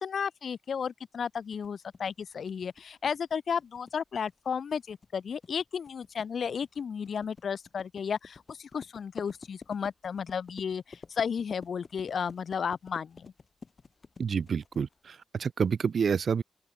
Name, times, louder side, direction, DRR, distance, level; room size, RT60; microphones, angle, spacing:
voice 1, 0.0-13.3, left 6 dB, 65° left, 0.4 m, -33 dB
sound 1, 1.3-15.1, left 4 dB, 40° left, 3.0 m, -49 dB
voice 2, 14.2-16.4, right 6 dB, 60° right, 0.9 m, -28 dB
open air
wide cardioid pair, 115°, 0 cm